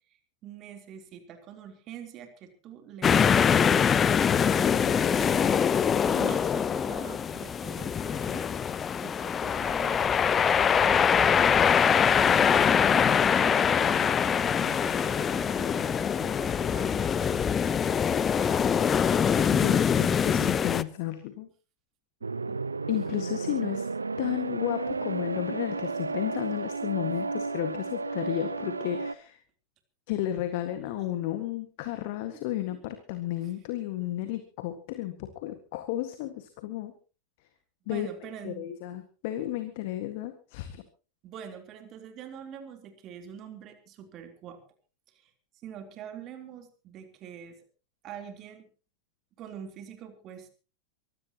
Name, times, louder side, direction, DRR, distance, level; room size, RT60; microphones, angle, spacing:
voice 1, 0.4-5.7 6.1-8.5 9.0-17.6 22.2-22.6 22.9-23.2 27.0-27.4 32.7-32.8 33.4-33.5 37.9-38.7 41.2-44.6 45.1-45.3 45.6-47.6 48.0-48.7 49.4-50.5, right 8 dB, 35° right, 6 dB, 3.6 m, -45 dB
sound 1, 3.0-20.8, left 7 dB, 20° left, 0.8 m, -24 dB
voice 2, 19.5-21.5 22.9-23.9 24.2-29.4 30.1-36.9 37.9-38.1 38.4-40.8, left 13 dB, 50° left, 9 dB, 1.8 m, -33 dB
sound 2, 22.2-29.1, right 3 dB, 80° right, 0.7 m, -33 dB
24.0 x 16.0 x 3.0 m, 0.35 s
figure-of-eight pair, 90°, 0 cm